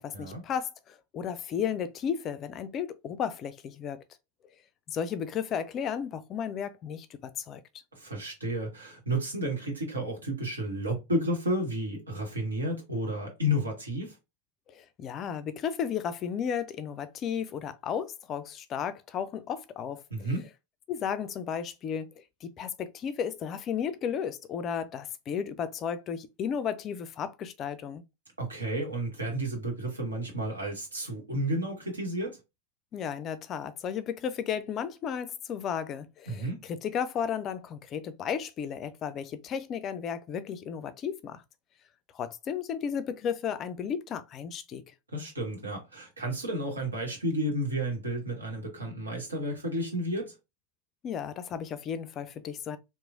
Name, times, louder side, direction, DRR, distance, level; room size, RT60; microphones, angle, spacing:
voice 1, 0.0-4.0 4.9-7.6 14.7-20.3 20.9-28.0 32.9-41.4 42.1-44.9 51.0-52.8, left 8 dB, 30° left, 0.3 m, -34 dB
voice 2, 7.9-14.1 20.1-20.4 28.4-32.4 36.3-36.6 45.1-50.3, equal, 75° right, 1.1 m, -32 dB
3.0 x 2.0 x 2.5 m
figure-of-eight pair, 90°, 0 cm